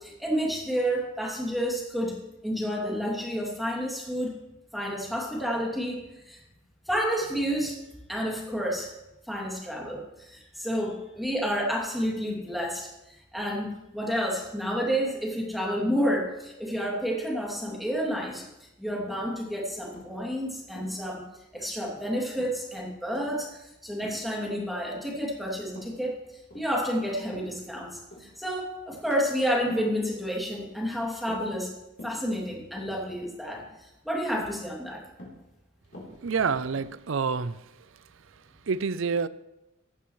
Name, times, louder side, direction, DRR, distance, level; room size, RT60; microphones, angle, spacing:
voice 1, 0.0-2.2 2.4-4.3 4.7-6.0 6.2-6.4 6.9-8.9 9.3-18.4 18.8-21.2 21.5-26.2 26.5-31.7 32.0-35.0, equal, ahead, -3 dB, 2.6 m, -30 dB
sound 1, 18.2-18.7 19.1-19.4 19.8-20.1 20.7-21.3 21.5-21.8 22.4-22.7 23.1-23.4 24.0-24.3 24.9-25.3 25.7-26.0 26.4-27.7 28.1-28.4 28.9-29.2 29.6-30.0 30.5-30.8 31.2-31.7 32.0-32.3 32.7-33.0 33.6-33.9 34.3-34.6 35.2-35.5 35.8-37.0, left 1 dB, 55° left, 3.5 m, -46 dB
voice 2, 36.2-37.6 38.7-39.3, right 5 dB, 75° right, 16 dB, 0.5 m, -27 dB
16.0 x 11.0 x 3.2 m, 0.94 s
head